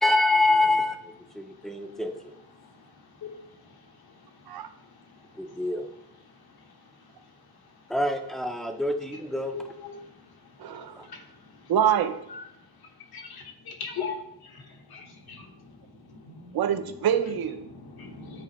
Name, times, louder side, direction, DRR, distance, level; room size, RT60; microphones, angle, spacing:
voice 1, 0.0-2.3 5.4-5.9 7.9-9.6 11.0-11.1, left 2 dB, ahead, 5 dB, 0.4 m, -26 dB
voice 2, 10.6-10.9 11.7-12.2 16.5-17.6, right 9 dB, 70° right, 9 dB, 0.7 m, -25 dB
voice 3, 13.1-14.1 14.5-15.5 16.1-16.6 17.7-18.4, left 6 dB, 75° left, 2 dB, 1.3 m, -39 dB
9.7 x 4.2 x 3.0 m, 0.78 s
wide cardioid pair, 175°, 38 cm